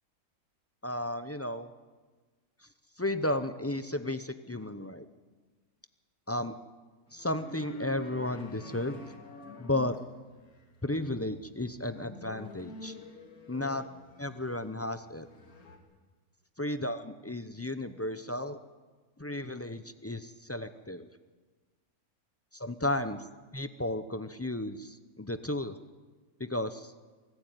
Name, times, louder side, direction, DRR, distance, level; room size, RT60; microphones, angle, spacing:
voice 1, 0.8-1.7 3.0-5.1 6.3-6.6 7.1-9.0 9.6-9.9 10.8-12.9 13.5-13.8 14.2-15.3 16.6-18.6 19.2-21.1 22.5-23.3 23.5-25.8 26.4-26.9, left 1 dB, 20° left, 11 dB, 0.4 m, -33 dB
sound 1, 7.1-15.8, left 2 dB, 75° left, 2.7 m, -48 dB
23.5 x 14.5 x 9.1 m, 1.4 s
omnidirectional pair, 1.5 m